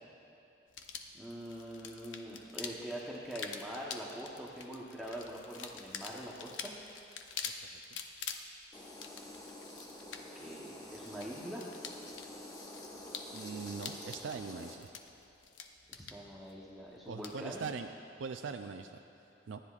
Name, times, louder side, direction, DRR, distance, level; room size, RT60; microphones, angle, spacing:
sound 1, 0.7-17.9, left 6 dB, 80° left, 0.7 m, -47 dB
voice 1, 1.1-6.7 10.3-11.7 15.9-17.7, right 1 dB, ahead, -5 dB, 1.0 m, -44 dB
sound 2, 8.7-14.7, left 1 dB, 20° left, 1.3 m, -48 dB
voice 2, 13.3-14.9 17.1-17.9 18.2-19.0 19.5-19.6, right 5 dB, 85° right, 6 dB, 0.4 m, -41 dB
26.0 x 10.0 x 2.4 m, 2.9 s
head